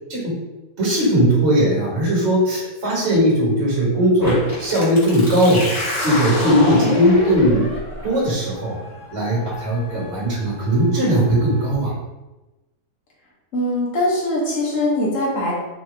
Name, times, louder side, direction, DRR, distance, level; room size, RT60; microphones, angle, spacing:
voice 1, 0.8-5.7 6.0-7.7 8.0-8.8 9.1-11.9, equal, 50° right, -6 dB, 1.9 m, -18 dB
sound 1, 4.2-11.7, left 1 dB, 25° left, 1.3 m, -28 dB
voice 2, 13.5-15.5, left 1 dB, 60° left, -5 dB, 1.5 m, -21 dB
4.6 x 2.9 x 3.4 m, 1.1 s
omnidirectional pair, 1.5 m